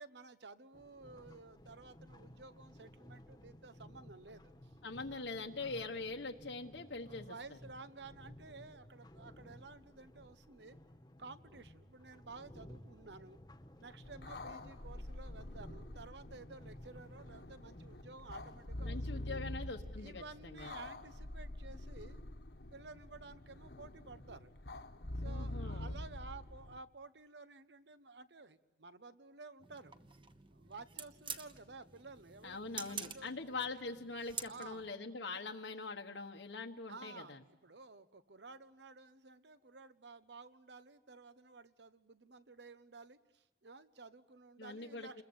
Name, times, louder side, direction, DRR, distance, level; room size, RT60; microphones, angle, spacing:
voice 1, 0.0-4.7 5.1-5.2 5.6-5.8 7.1-10.8 11.2-13.4 13.8-19.4 20.0-22.2 22.7-24.5 25.1-30.0 30.5-33.4 34.3-34.9 36.9-45.2, right 3 dB, 75° right, 13 dB, 1.2 m, -53 dB
sound 1, 0.7-18.7, left 1 dB, 20° left, 1.3 m, -57 dB
voice 2, 4.8-7.6 18.8-20.7 25.2-26.0 32.4-37.4 44.6-45.2, left 3 dB, 90° left, 2 dB, 1.4 m, -43 dB
sound 2, 14.0-26.8, left 1 dB, 65° left, 1.4 m, -46 dB
sound 3, 29.6-34.9, right 6 dB, 30° right, 1.3 m, -48 dB
28.5 x 21.5 x 8.8 m, 0.91 s
head